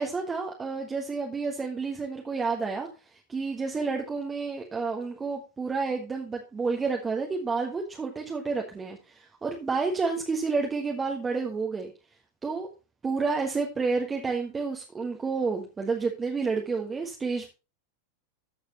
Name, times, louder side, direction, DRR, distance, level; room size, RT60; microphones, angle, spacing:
voice 1, 0.0-11.9 12.4-12.7 13.0-17.5, right 4 dB, 15° right, 1 dB, 1.5 m, -30 dB
14.0 x 6.6 x 3.0 m, 0.29 s
figure-of-eight pair, 90°, 0 cm